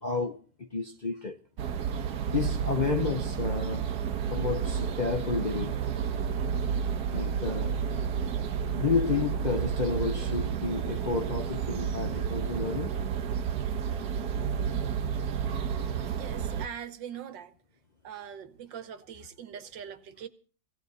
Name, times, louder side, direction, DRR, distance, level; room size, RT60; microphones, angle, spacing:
voice 1, 0.0-1.4 2.3-3.9 4.3-5.8 7.1-7.8 8.8-12.9, left 5 dB, 85° left, 0.4 m, -31 dB
sound 1, 1.6-16.7, right 7 dB, 65° right, 1.4 m, -31 dB
voice 2, 16.2-17.5 18.0-20.3, right 8 dB, 85° right, 1.8 m, -42 dB
17.5 x 16.5 x 4.1 m
omnidirectional pair, 1.9 m